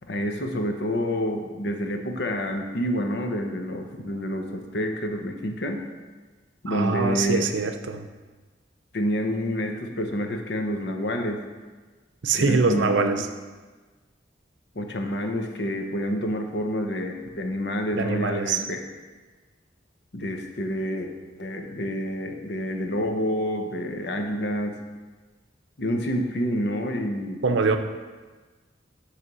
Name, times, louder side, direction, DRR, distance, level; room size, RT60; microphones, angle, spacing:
voice 1, 0.1-5.8 6.6-7.4 8.9-11.4 12.4-13.1 14.7-18.8 20.1-21.1 21.4-24.8 25.8-27.4, equal, 60° left, 4 dB, 0.8 m, -28 dB
voice 2, 6.7-8.1 12.2-13.3 17.9-18.6 27.4-27.8, right 4 dB, 75° right, 7 dB, 0.6 m, -23 dB
9.4 x 3.3 x 6.1 m, 1.4 s
head